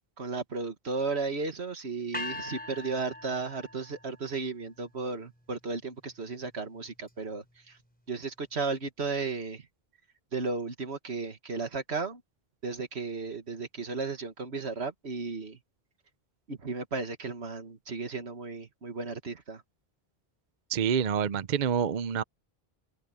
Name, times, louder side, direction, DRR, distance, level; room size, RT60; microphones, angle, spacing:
voice 1, 0.2-7.8 8.1-9.7 10.3-12.2 12.6-15.6 16.5-19.6, right 4 dB, 80° right, 2.0 m, -34 dB
sound 1, 2.1-4.2, left 2 dB, 10° left, 4.8 m, -40 dB
voice 2, 20.7-22.2, right 7 dB, 50° right, 0.7 m, -27 dB
omnidirectional pair, 1.1 m